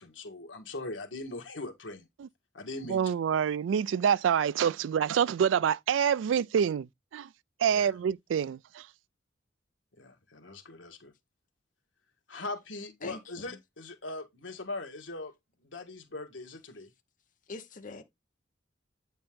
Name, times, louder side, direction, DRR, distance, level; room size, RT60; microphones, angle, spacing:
voice 1, 0.0-2.1 2.5-3.2 7.7-7.9 9.9-11.1 12.3-15.3 15.6-16.9, left 2 dB, 85° left, 1.7 m, -41 dB
voice 2, 2.9-6.9 7.1-7.3 7.6-8.8, right 8 dB, 90° right, 0.3 m, -26 dB
voice 3, 13.0-13.6 17.5-18.0, left 3 dB, 45° left, 0.9 m, -43 dB
8.8 x 4.2 x 3.6 m
head